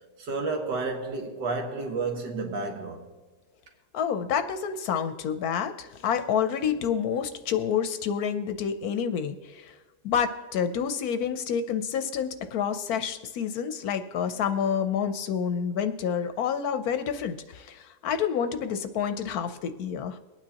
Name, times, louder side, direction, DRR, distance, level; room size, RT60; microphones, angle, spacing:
voice 1, 0.2-3.0, right 3 dB, 85° right, 1.9 m, -31 dB
voice 2, 3.9-9.7 10.0-20.2, left 7 dB, 70° left, 1.1 m, -28 dB
23.0 x 9.1 x 2.9 m
omnidirectional pair, 1.8 m